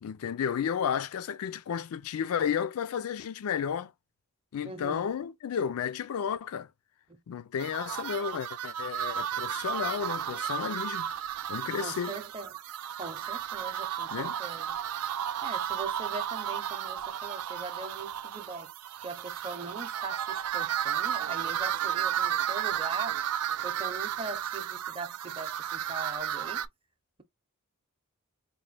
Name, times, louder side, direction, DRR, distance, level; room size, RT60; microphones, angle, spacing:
voice 1, 0.0-3.9 4.5-6.7 7.3-11.1 11.5-12.2 14.1-14.4, left 7 dB, 70° left, 0.4 m, -32 dB
voice 2, 4.6-5.1 7.1-7.2 11.8-12.5 13.0-14.8 15.4-18.7 19.0-23.2 23.6-26.7, right 3 dB, 25° right, 0.6 m, -41 dB
sound 1, 7.6-26.7, right 10 dB, 80° right, 0.4 m, -33 dB
3.9 x 2.2 x 3.2 m
head